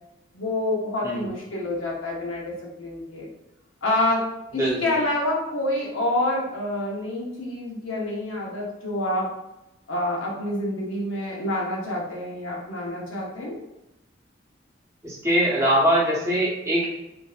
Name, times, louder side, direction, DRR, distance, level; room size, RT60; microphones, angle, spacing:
voice 1, 0.3-2.5 2.8-3.3 3.8-4.3 4.5-9.3 9.9-13.6, left 1 dB, 90° left, -2 dB, 0.8 m, -27 dB
voice 2, 4.6-4.9 15.0-16.9, equal, 15° right, -6 dB, 0.8 m, -22 dB
3.2 x 2.6 x 2.4 m, 0.91 s
head